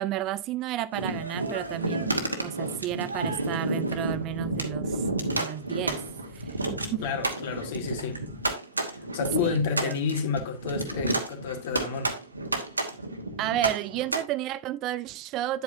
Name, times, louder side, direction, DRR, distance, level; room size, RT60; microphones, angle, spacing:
voice 1, 0.0-2.1 2.4-6.0 6.3-7.0 9.4-10.0 13.4-15.6, right 13 dB, 35° right, 0.5 m, -32 dB
sound 1, 0.9-14.2, right 2 dB, 80° right, 1.2 m, -31 dB
voice 2, 7.0-8.3 8.9-12.2, left 6 dB, 55° left, 1.7 m, -30 dB
9.4 x 7.9 x 2.6 m
figure-of-eight pair, 90°, 0 cm